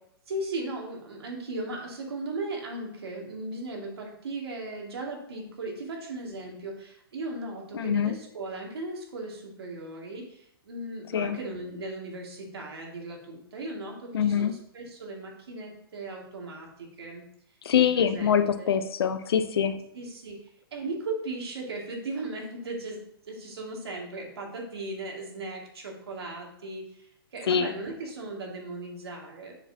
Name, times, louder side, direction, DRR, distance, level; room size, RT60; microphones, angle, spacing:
voice 1, 0.3-17.2 17.8-18.8 19.9-29.6, right 2 dB, 85° right, -1 dB, 2.5 m, -37 dB
voice 2, 7.7-8.1 11.1-11.4 14.1-14.5 17.6-19.8 27.5-27.7, left 8 dB, 80° left, 10 dB, 0.8 m, -24 dB
7.2 x 6.8 x 2.9 m, 0.71 s
hypercardioid pair, 140°, 13 cm